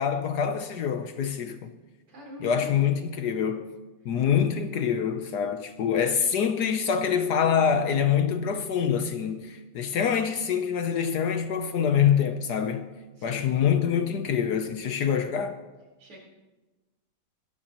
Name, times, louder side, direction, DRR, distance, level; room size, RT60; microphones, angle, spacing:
voice 1, 0.0-1.7 2.4-3.6 4.0-12.9 13.2-15.5, left 8 dB, 65° left, 1.0 m, -25 dB
voice 2, 2.1-2.8 13.2-13.4 16.0-16.2, equal, 85° right, 4.9 m, -42 dB
22.0 x 14.0 x 2.9 m
omnidirectional pair, 2.4 m